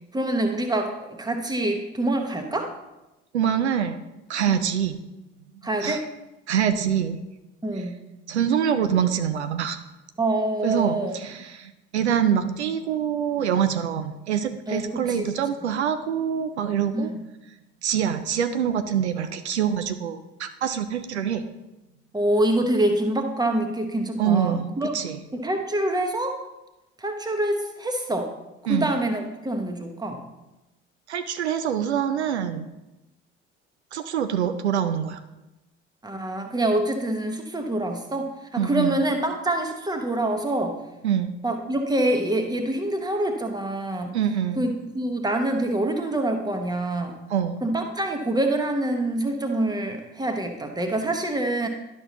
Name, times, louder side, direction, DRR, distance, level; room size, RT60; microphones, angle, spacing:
voice 1, 0.1-2.7 4.5-4.7 5.6-6.1 7.6-8.0 10.2-11.2 14.7-15.3 16.9-17.2 22.1-24.9 25.3-26.4 27.0-28.3 28.7-30.3 36.0-40.8 41.4-44.2 44.6-47.2 47.6-51.7, right 1 dB, 10° right, 5 dB, 1.3 m, -26 dB
voice 2, 3.3-4.0 4.3-5.0 5.8-6.0 6.5-7.2 8.3-9.8 10.6-17.1 17.8-21.4 24.2-25.2 28.7-28.9 31.1-32.7 33.9-35.2 38.6-39.0 41.0-41.3 44.1-44.6 47.3-47.6, right 8 dB, 80° right, 9 dB, 0.5 m, -25 dB
11.5 x 6.3 x 2.9 m, 0.98 s
figure-of-eight pair, 50°, 33 cm